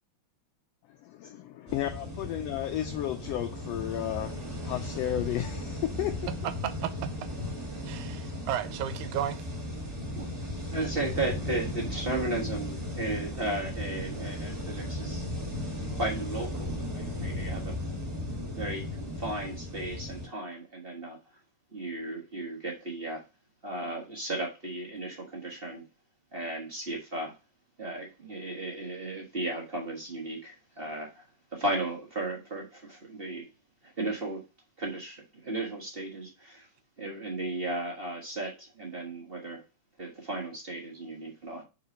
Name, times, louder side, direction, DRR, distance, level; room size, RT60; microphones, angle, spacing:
voice 1, 1.0-4.4 4.6-6.2, left 12 dB, 90° left, 1.4 m, -33 dB
sound 1, 1.7-20.3, left 1 dB, 20° right, 2.0 m, -36 dB
voice 2, 6.3-7.3 7.8-9.5, right 11 dB, 90° right, 2.1 m, -34 dB
voice 3, 10.7-15.2 15.9-17.7 18.6-21.2 21.7-23.2 23.6-25.8 26.3-27.3 27.8-31.2 31.5-33.5 33.8-34.4 34.8-36.7 37.0-39.6 40.0-41.6, right 2 dB, 55° right, 0.6 m, -35 dB
5.0 x 4.5 x 5.1 m
omnidirectional pair, 3.4 m